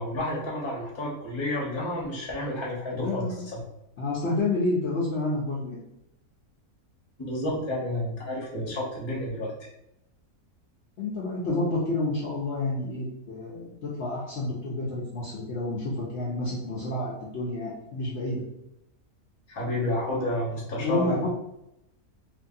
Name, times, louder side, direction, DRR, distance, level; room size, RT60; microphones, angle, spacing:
voice 1, 0.0-3.6 7.2-9.5 19.5-21.3, left 1 dB, 25° left, -4 dB, 0.7 m, -30 dB
voice 2, 2.9-3.4 4.0-5.8 11.0-18.4 20.8-21.3, left 2 dB, 60° left, -6 dB, 0.8 m, -29 dB
2.9 x 2.7 x 2.6 m, 0.84 s
omnidirectional pair, 1.6 m